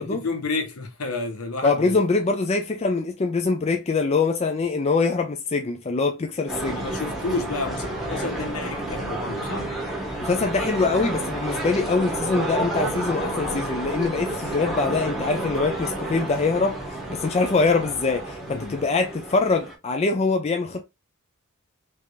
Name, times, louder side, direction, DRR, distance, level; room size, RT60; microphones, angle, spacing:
voice 1, 0.0-2.0 6.7-9.8 18.5-18.8, left 3 dB, 70° left, 0.9 m, -30 dB
voice 2, 1.6-6.8 10.2-16.8 17.1-20.8, left 4 dB, 30° left, 0.4 m, -23 dB
sound 1, 6.5-19.7, right 1 dB, ahead, 0.9 m, -30 dB
3.3 x 3.3 x 2.5 m
head